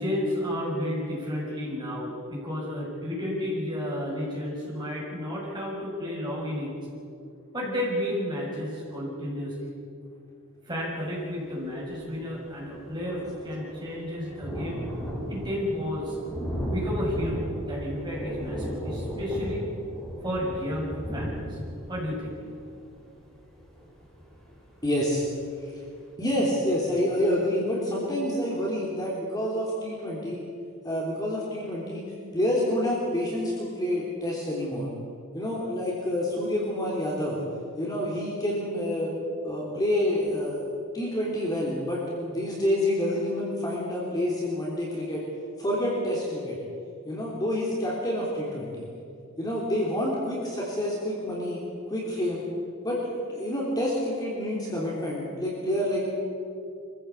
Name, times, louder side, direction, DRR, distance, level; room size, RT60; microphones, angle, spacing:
voice 1, 0.0-6.7 7.5-9.6 10.6-14.8 15.3-16.2 16.7-19.6 20.2-21.6 21.9-22.3, left 1 dB, 20° right, -4 dB, 6.4 m, -32 dB
Thunder, 11.9-12.0 12.3-24.9 25.4-25.5 25.8-25.9, equal, ahead, 5.5 m, -35 dB
voice 2, 24.8-25.2 25.6-25.7 26.2-30.4 30.8-32.0 32.3-34.9 35.3-37.4 37.8-39.1 39.4-40.6 40.9-45.2 45.6-46.6 47.0-48.9 49.4-51.6 51.9-52.4 52.8-56.0, left 1 dB, 20° left, -4 dB, 3.3 m, -28 dB
24.5 x 15.0 x 8.4 m, 2.4 s
head